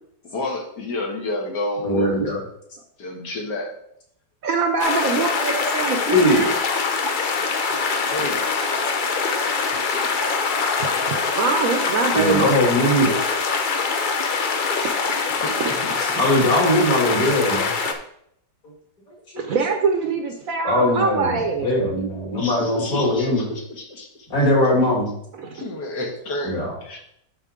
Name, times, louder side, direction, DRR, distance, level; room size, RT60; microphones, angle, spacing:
voice 1, 0.2-2.2 3.0-3.7 5.1-5.3 8.1-8.5 15.4-15.9 22.3-24.1 25.5-27.0, left 2 dB, 70° left, 0 dB, 1.9 m, -30 dB
voice 2, 1.8-2.4 6.1-6.5 7.7-7.8 10.8-11.2 12.1-13.1 16.1-17.7 19.1-19.4 20.6-23.5 24.3-25.1 26.4-26.7, left 1 dB, 55° left, -3 dB, 2.9 m, -21 dB
voice 3, 4.4-6.5 9.7-9.9 11.1-12.5 19.4-21.7 25.4-25.6, right 4 dB, 60° right, 5 dB, 1.0 m, -24 dB
sound 1, 4.8-17.9, left 4 dB, 85° left, 0.4 m, -23 dB
11.5 x 4.1 x 3.7 m, 0.70 s
omnidirectional pair, 1.9 m